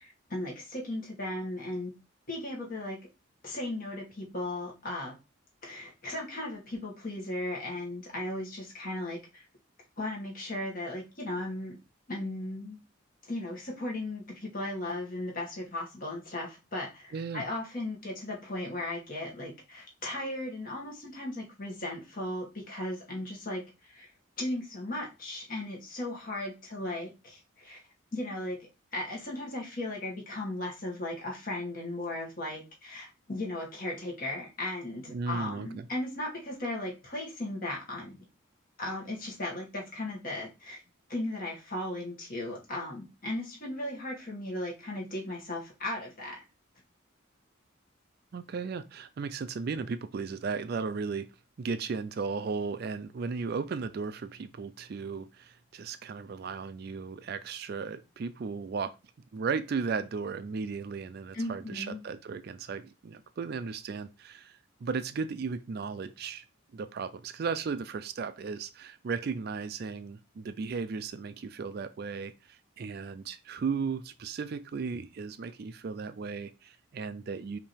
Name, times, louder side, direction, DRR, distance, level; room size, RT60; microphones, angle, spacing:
voice 1, 0.0-1.9 2.3-3.0 3.4-5.2 5.6-9.4 10.0-11.8 12.1-12.8 13.3-23.6 23.9-24.1 24.4-27.8 28.1-28.6 28.9-38.3 38.8-40.8 41.1-46.4 61.3-62.0, left 1 dB, 45° left, 1.8 m, -36 dB
voice 2, 17.1-17.4 35.1-35.9 48.3-51.3 51.6-58.9 59.3-66.4 66.7-77.6, right 5 dB, 50° right, 0.3 m, -35 dB
5.3 x 2.9 x 3.3 m
head